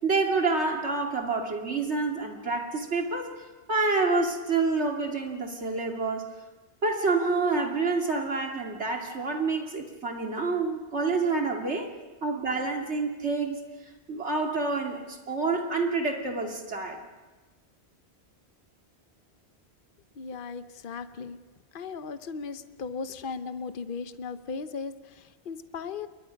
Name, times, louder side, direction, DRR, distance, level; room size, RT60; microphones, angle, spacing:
voice 1, 0.0-3.3 3.7-6.3 6.8-11.9 12.2-13.6 14.1-17.0, right 3 dB, 90° right, 2 dB, 2.9 m, -28 dB
voice 2, 20.2-21.4 21.7-26.1, left 5 dB, 55° left, 11 dB, 1.0 m, -37 dB
28.5 x 23.0 x 5.2 m, 1.2 s
omnidirectional pair, 1.1 m